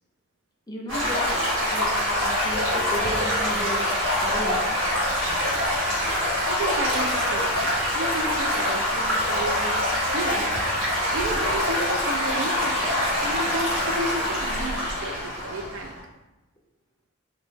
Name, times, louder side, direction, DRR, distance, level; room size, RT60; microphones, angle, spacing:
voice 1, 0.7-3.9 4.2-4.6, equal, 20° left, -2 dB, 0.4 m, -34 dB
Stream / Gurgling / Trickle dribble, 0.9-16.0, left 1 dB, 90° right, 1.5 m, -25 dB
voice 2, 5.3-5.8 6.5-10.6 11.1-12.8 13.2-16.0, right 2 dB, 70° right, 4 dB, 0.4 m, -33 dB
3.0 x 2.1 x 3.1 m, 1.0 s
head